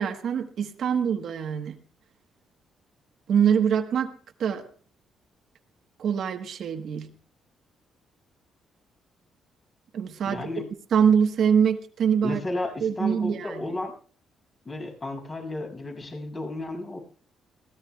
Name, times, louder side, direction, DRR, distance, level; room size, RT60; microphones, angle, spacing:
voice 1, 0.0-1.8 3.3-4.1 4.4-4.6 6.0-7.1 9.9-10.4 10.9-12.4 12.8-13.6, right 7 dB, 65° right, 6 dB, 1.3 m, -24 dB
voice 2, 10.2-10.7 12.2-13.9 14.7-17.0, left 2 dB, 30° left, 2 dB, 7.0 m, -33 dB
22.5 x 17.0 x 2.4 m, 0.43 s
cardioid pair, 90°, 0 cm